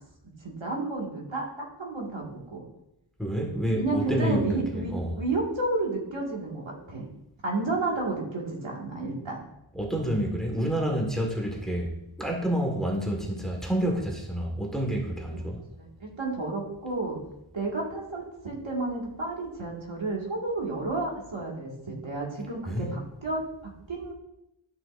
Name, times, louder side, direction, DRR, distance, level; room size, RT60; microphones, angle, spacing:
voice 1, 0.4-1.4 1.8-2.6 3.7-7.1 7.4-9.4 15.3-15.4 15.8-17.2 17.5-24.1, right 2 dB, 70° right, -2 dB, 2.1 m, -31 dB
voice 2, 3.2-4.4 4.7-5.2 9.7-11.9 12.2-15.6 22.7-22.9, equal, ahead, -1 dB, 1.7 m, -28 dB
12.5 x 5.6 x 2.6 m, 0.84 s
wide cardioid pair, 75°, 49 cm